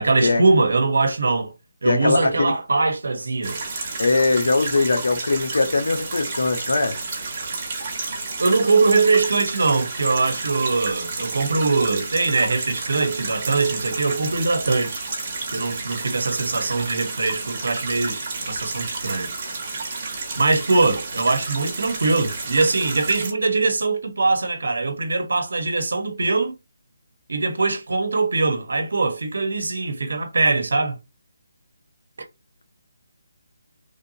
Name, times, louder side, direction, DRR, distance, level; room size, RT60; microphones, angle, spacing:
voice 1, 0.0-1.5 1.8-3.6 8.4-15.0 15.5-19.3 20.4-26.5 27.3-31.0, right 3 dB, 80° right, 1.0 m, -22 dB
voice 2, 1.8-2.5 4.0-7.0, left 3 dB, 80° left, 0.9 m, -21 dB
sound 1, 3.4-23.3, right 3 dB, 35° right, 1.4 m, -31 dB
3.3 x 2.7 x 2.7 m
hypercardioid pair, 165°, 0 cm